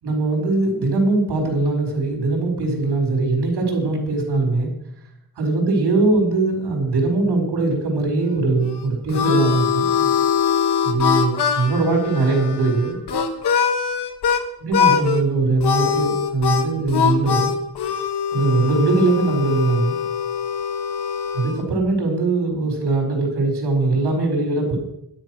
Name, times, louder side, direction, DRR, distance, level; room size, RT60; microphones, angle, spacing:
voice 1, 0.0-4.7 5.4-10.1 10.8-13.0 14.6-17.5 18.3-19.9 21.3-24.8, right 3 dB, 80° right, -1 dB, 4.8 m, -21 dB
Harmonica, 8.6-14.4 14.7-15.2 15.6-21.6, left 7 dB, 85° left, 1.6 m, -22 dB
12.5 x 10.5 x 6.3 m, 0.79 s
wide cardioid pair, 175°, 39 cm